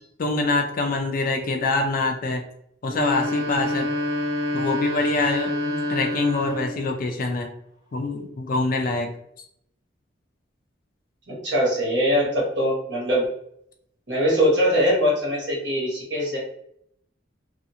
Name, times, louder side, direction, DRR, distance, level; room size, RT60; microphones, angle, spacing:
voice 1, 0.2-2.4 2.8-3.9 4.5-7.5 7.9-9.1, left 3 dB, 50° left, 4 dB, 0.4 m, -25 dB
sound 1, 2.8-6.9, left 1 dB, 20° right, 0.5 m, -27 dB
voice 2, 11.3-13.2 14.1-16.4, equal, 65° right, -4 dB, 1.2 m, -22 dB
2.5 x 2.4 x 2.7 m, 0.72 s
head